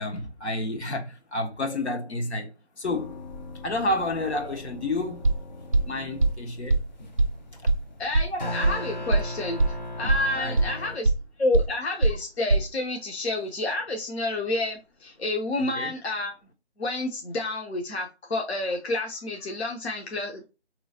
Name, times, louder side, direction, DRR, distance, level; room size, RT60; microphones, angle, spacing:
voice 1, 0.0-3.2 3.6-5.3 5.8-6.8 7.6-7.7 10.3-10.6 15.6-15.9, left 2 dB, 90° left, 1.2 m, -30 dB
sound 1, 2.8-11.0, left 1 dB, 45° left, 0.4 m, -39 dB
sound 2, 5.2-5.3 5.7-5.8 6.2-6.3 6.7-6.8 7.2-7.3 7.7-7.8 8.1-8.2 8.6-8.7 9.1-9.2 9.6-9.7 10.1-10.2 10.6-10.7 11.0-11.1 11.5-11.6 12.0-12.1 12.5-12.6, right 2 dB, 35° right, 0.4 m, -20 dB
voice 2, 8.0-11.1 11.4-16.3 16.8-20.5, left 2 dB, 70° left, 0.8 m, -29 dB
3.9 x 3.0 x 2.7 m
figure-of-eight pair, 165°, 33 cm